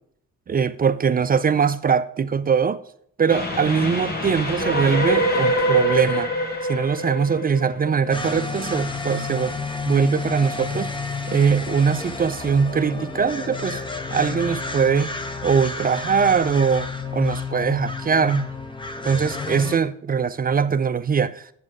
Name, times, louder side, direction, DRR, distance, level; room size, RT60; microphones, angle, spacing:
voice 1, 0.5-2.8 3.2-6.3 6.7-9.6 9.9-10.9 11.3-13.8 14.1-15.1 15.4-18.5 19.0-21.5, right 6 dB, 30° right, 0.4 m, -21 dB
Train, 3.3-8.6, equal, 30° left, 1.7 m, -24 dB
sound 1, 8.1-19.8, left 4 dB, 15° left, 1.0 m, -30 dB
7.6 x 7.5 x 6.1 m
cardioid pair, 90°, 30 cm